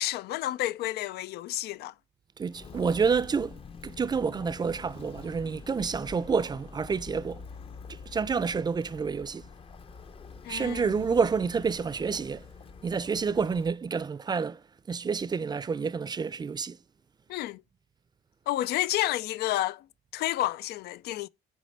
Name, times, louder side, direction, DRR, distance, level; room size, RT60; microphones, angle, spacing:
voice 1, 0.0-1.9 10.4-11.0 17.3-17.6 18.5-19.9 20.1-21.3, left 15 dB, 70° left, 0.4 m, -30 dB
voice 2, 2.4-7.4 7.9-9.4 10.5-12.5 12.8-14.6 14.9-16.8, right 5 dB, 25° right, 0.5 m, -29 dB
Walk footsteps, 2.5-13.8, left 5 dB, 35° left, 0.7 m, -46 dB
9.3 x 3.1 x 6.3 m
cardioid pair, 110°, 17 cm